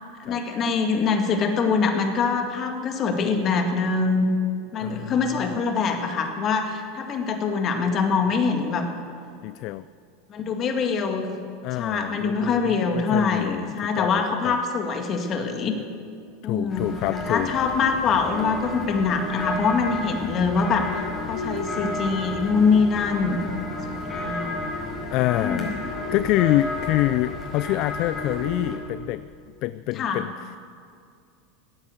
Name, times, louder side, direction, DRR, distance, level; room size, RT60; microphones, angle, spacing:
voice 1, 0.2-4.3 4.7-8.9 10.3-11.4 11.7-15.8 16.4-21.0 21.3-23.4 23.9-24.7 25.4-25.7 30.0-30.2, left 5 dB, 40° left, 5 dB, 2.0 m, -24 dB
voice 2, 4.8-5.5 9.4-9.9 11.6-14.6 16.4-17.5 25.1-29.2 29.6-30.6, left 16 dB, 55° left, 16 dB, 0.3 m, -27 dB
sound 1, 16.7-28.8, left 2 dB, 25° left, 5.1 m, -32 dB
15.5 x 9.9 x 8.1 m, 2.4 s
supercardioid pair, 110°, 0 cm